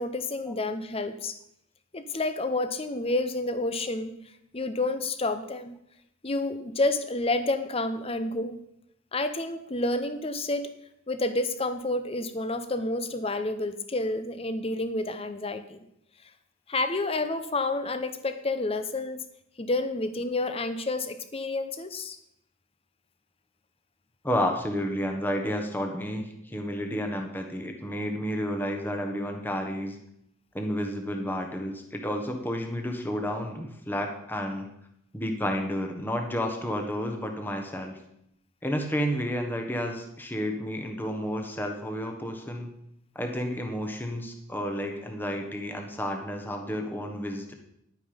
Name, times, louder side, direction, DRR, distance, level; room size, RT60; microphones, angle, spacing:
voice 1, 0.0-1.4 1.9-4.2 4.5-5.8 6.2-8.6 9.1-10.7 11.1-15.8 16.7-19.2 19.6-22.2, left 2 dB, 30° left, 10 dB, 0.8 m, -29 dB
voice 2, 24.2-30.0 30.5-34.7 35.1-38.0 38.6-42.7 43.1-47.5, equal, 10° left, 3 dB, 1.3 m, -31 dB
10.5 x 9.4 x 5.2 m, 0.76 s
head